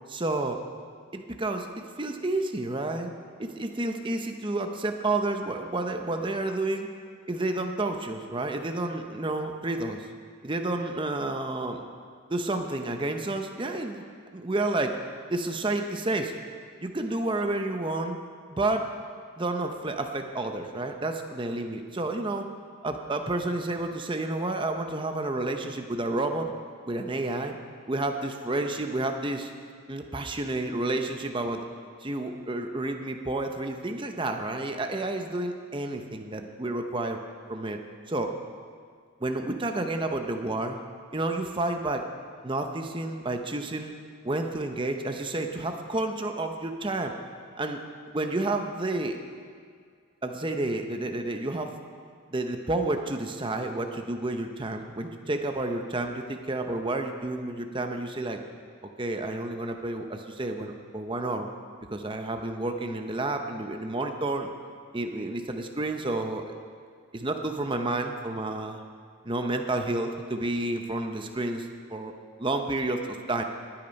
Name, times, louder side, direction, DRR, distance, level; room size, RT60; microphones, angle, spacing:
voice 1, 0.1-0.6 1.1-3.1 3.4-6.9 7.3-10.0 10.4-11.9 12.3-14.0 14.3-15.0 15.3-16.4 16.8-18.2 18.5-18.9 19.4-22.5 22.8-26.5 26.9-27.5 27.9-29.5 29.9-31.6 32.0-37.2 37.5-37.8 38.1-38.3 39.2-40.8 41.1-42.1 42.4-43.9 44.2-47.1 47.6-47.8 48.1-49.2 50.2-51.7 52.3-58.4 59.0-61.5 61.9-64.5 64.9-66.5 67.1-68.8 69.2-72.1 72.4-73.4, right 2 dB, 20° right, 5 dB, 0.8 m, -30 dB
19.0 x 8.8 x 5.3 m, 2.1 s
head